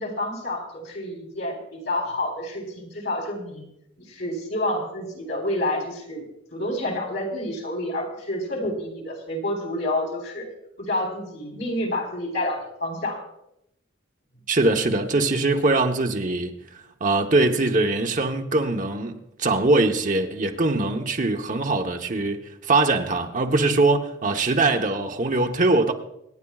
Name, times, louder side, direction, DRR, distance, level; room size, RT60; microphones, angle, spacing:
voice 1, 0.0-3.7 4.0-6.2 6.5-10.5 10.8-13.2, left 1 dB, 60° left, 3.9 m, -29 dB
voice 2, 14.5-16.5 17.0-25.9, right 2 dB, 40° right, 1.0 m, -22 dB
26.5 x 10.0 x 2.4 m
head